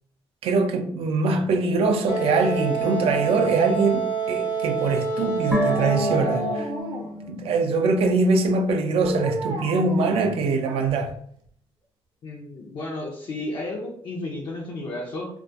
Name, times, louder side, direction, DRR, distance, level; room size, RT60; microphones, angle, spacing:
voice 1, 0.4-6.7 7.3-11.1, right 3 dB, 70° right, 0.4 m, -23 dB
Dog, 1.8-3.9 5.6-7.3 9.0-11.1 11.5-11.6, equal, 50° right, 0.8 m, -34 dB
Wind instrument woodwind instrument, 2.1-6.8, right 5 dB, 85° left, 0.9 m, -27 dB
sound 1, 5.5-8.8 9.1-9.2, left 1 dB, 5° right, 0.5 m, -30 dB
voice 2, 12.2-15.4, left 2 dB, 50° left, 0.4 m, -33 dB
2.2 x 2.1 x 2.6 m
cardioid pair, 90°, 10 cm